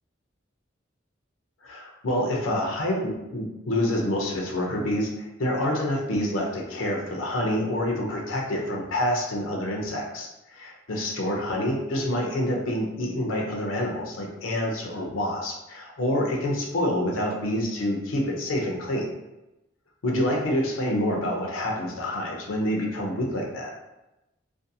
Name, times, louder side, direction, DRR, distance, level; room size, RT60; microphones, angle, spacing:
voice 1, 1.6-19.1 20.0-23.7, left 1 dB, 85° left, -1 dB, 0.5 m, -27 dB
2.5 x 2.2 x 2.6 m, 0.95 s
head